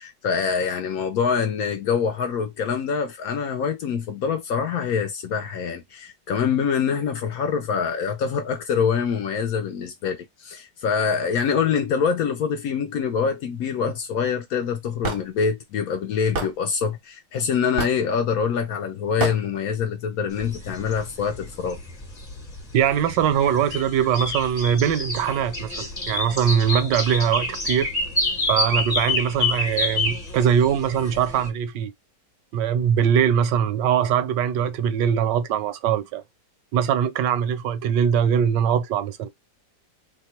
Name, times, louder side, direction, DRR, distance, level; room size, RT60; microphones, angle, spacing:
voice 1, 0.0-21.8, left 6 dB, 70° left, 0.9 m, -25 dB
Hammer / Wood, 15.0-15.2 16.3-16.5 17.8-18.1 19.2-19.4, right 4 dB, 50° right, 0.7 m, -26 dB
sound 1, 20.3-31.5, left 2 dB, 25° left, 0.9 m, -28 dB
voice 2, 22.7-27.9 28.5-31.9 32.5-36.2 36.7-39.3, right 8 dB, 80° right, 1.2 m, -22 dB
2.9 x 2.2 x 4.2 m
omnidirectional pair, 1.9 m